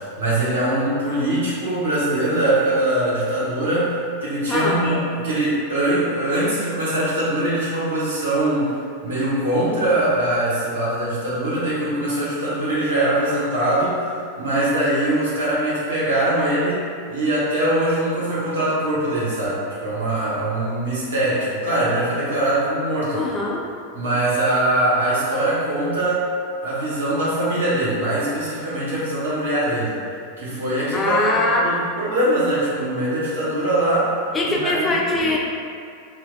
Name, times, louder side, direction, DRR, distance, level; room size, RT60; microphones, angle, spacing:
voice 1, 0.0-8.8 9.0-23.2 23.9-26.2 26.6-30.0 30.4-31.1 31.6-34.1 34.4-35.3, right 1 dB, 65° right, -9 dB, 0.9 m, -22 dB
voice 2, 4.5-4.9 23.2-23.6 30.9-31.6 34.3-35.4, left 2 dB, 20° left, -2 dB, 0.3 m, -22 dB
2.2 x 2.1 x 3.8 m, 2.3 s
figure-of-eight pair, 90°, 0 cm